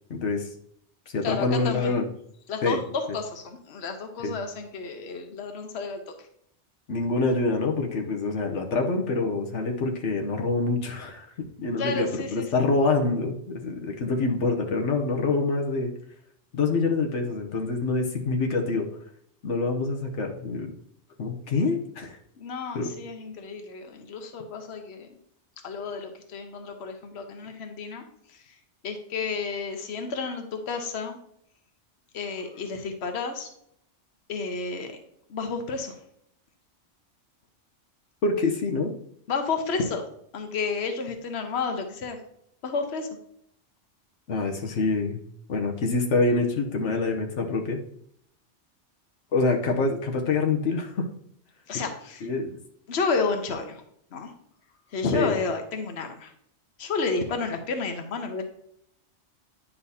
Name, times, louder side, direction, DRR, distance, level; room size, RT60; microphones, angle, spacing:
voice 1, 0.1-0.5 1.1-2.1 2.6-2.8 4.2-4.3 6.9-15.9 16.5-18.9 19.4-20.7 21.2-22.2 22.7-22.9 38.2-38.9 44.3-45.2 45.5-47.8 49.3-51.0 52.2-52.6 55.1-55.3, left 3 dB, 80° left, 2 dB, 1.2 m, -26 dB
voice 2, 1.2-2.0 2.5-6.3 11.8-12.6 22.4-25.2 25.6-28.6 28.8-31.2 32.1-33.5 34.3-35.0 35.3-36.0 39.3-40.0 40.3-42.2 42.6-43.1 51.7-52.3 52.9-53.8 54.1-54.3 54.9-56.3 56.8-58.4, left 4 dB, 65° left, 5 dB, 1.2 m, -31 dB
9.9 x 5.7 x 2.8 m, 0.70 s
omnidirectional pair, 1.2 m